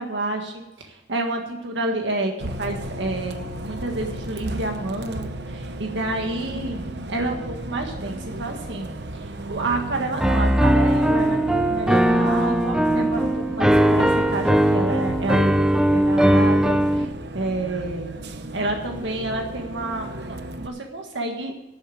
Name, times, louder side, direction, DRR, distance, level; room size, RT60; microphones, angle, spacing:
voice 1, 0.0-18.2 18.5-21.7, right 2 dB, 85° right, 3 dB, 1.8 m, -29 dB
Bus, 2.4-20.7, right 1 dB, 65° right, 1.0 m, -34 dB
Piano, 10.2-17.0, right 1 dB, 5° right, 0.6 m, -19 dB
12.5 x 7.1 x 9.2 m, 0.98 s
head